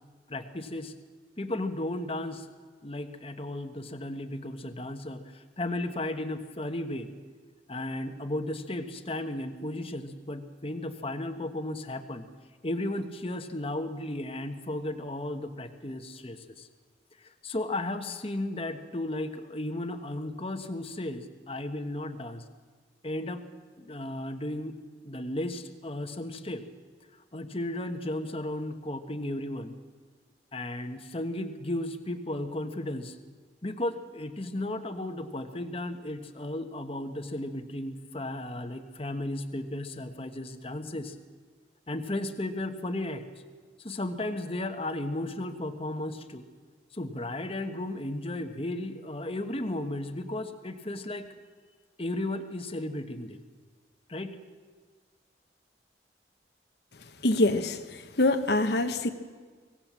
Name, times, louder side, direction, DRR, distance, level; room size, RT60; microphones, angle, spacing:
voice 1, 0.3-0.9 1.4-2.5 2.8-7.1 7.7-12.2 12.6-16.7 17.2-22.5 23.0-23.4 23.8-24.7 25.0-26.6 27.1-29.8 30.5-33.2 33.6-41.1 41.9-43.3 43.8-46.5 46.9-51.3 52.0-53.4 54.1-54.4, left 1 dB, 35° left, 6 dB, 1.3 m, -34 dB
voice 2, 57.2-59.1, left 2 dB, 70° left, 7 dB, 1.2 m, -25 dB
25.0 x 18.0 x 7.5 m, 1.5 s
head